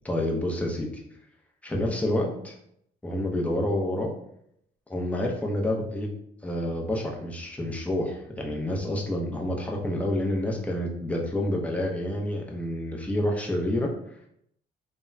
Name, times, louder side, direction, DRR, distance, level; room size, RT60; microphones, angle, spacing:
voice 1, 0.0-0.9 1.6-2.5 3.0-4.1 4.9-6.1 6.4-13.9, left 1 dB, 5° left, 0 dB, 0.6 m, -28 dB
3.4 x 2.1 x 2.6 m, 0.71 s
cardioid pair, 90°, 20 cm